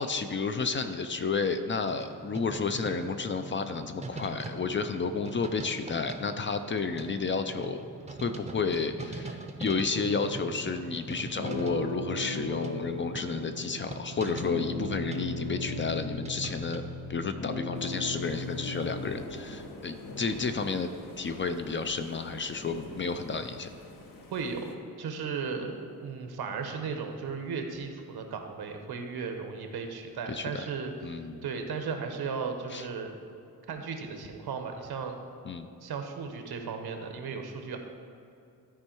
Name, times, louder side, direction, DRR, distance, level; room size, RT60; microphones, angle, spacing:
voice 1, 0.0-7.8 8.2-16.8 17.1-20.9 21.2-23.7 30.3-30.7 31.0-31.4 32.7-32.9 35.5-35.7, left 4 dB, 35° left, 9 dB, 0.4 m, -31 dB
sound 1, 1.8-16.8, right 3 dB, 20° right, 0.6 m, -43 dB
sound 2, 9.9-19.1, left 2 dB, 80° left, 1.4 m, -37 dB
sound 3, 17.7-24.7, left 2 dB, 60° left, 0.9 m, -45 dB
voice 2, 24.3-24.7 25.0-25.8 26.0-33.2 33.7-35.1 35.8-37.8, right 5 dB, 85° right, 5 dB, 1.0 m, -35 dB
13.0 x 4.5 x 4.5 m, 2.6 s
wide cardioid pair, 130°, 37 cm